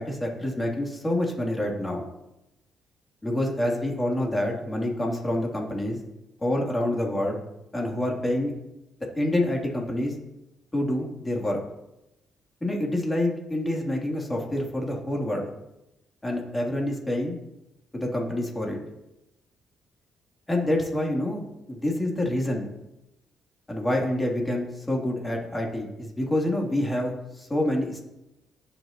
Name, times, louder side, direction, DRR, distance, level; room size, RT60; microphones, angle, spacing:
voice 1, 0.0-2.0 3.2-6.0 6.4-7.4 7.7-8.5 9.1-10.1 10.7-11.6 12.6-15.4 16.2-17.4 17.9-18.8 20.5-21.4 21.7-22.7 23.7-28.0, left 1 dB, 15° left, -1 dB, 3.0 m, -27 dB
19.0 x 7.0 x 3.0 m, 0.91 s
cardioid pair, 90°, 0 cm